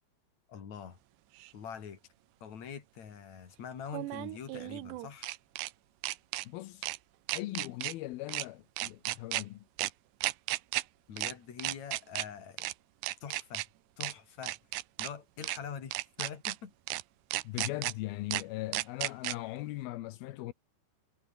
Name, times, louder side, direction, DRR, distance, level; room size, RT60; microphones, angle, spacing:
voice 1, 0.5-1.0 1.5-2.0 2.4-5.3 11.1-12.7 13.2-13.6 14.0-14.6 15.0-16.7 17.5-17.7, left 7 dB, 40° left, 3.7 m, -44 dB
sound 1, 1.4-1.5 3.9-5.7 6.0-6.5 6.8-7.0 7.3-7.9 8.3-8.5 8.8-9.4 9.8-9.9 10.2-10.8 11.2-11.3 11.6-12.3 12.6-12.7 13.0-13.7 14.0-14.1 14.4-15.1 15.4-15.6 15.9-16.6 16.9-17.0 17.3-17.9 18.3-18.4 18.7-19.4, right 18 dB, 75° right, 2.7 m, -34 dB
voice 2, 6.5-6.9 7.3-9.6 17.4-20.5, left 16 dB, 80° left, 2.2 m, -39 dB
omnidirectional pair, 5.5 m